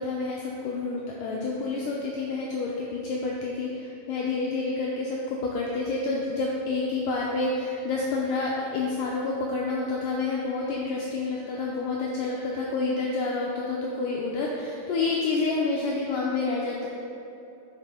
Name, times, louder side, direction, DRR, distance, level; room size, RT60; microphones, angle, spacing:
voice 1, 0.0-16.9, left 3 dB, 90° left, -3 dB, 1.9 m, -29 dB
8.9 x 4.8 x 3.7 m, 2.8 s
omnidirectional pair, 4.4 m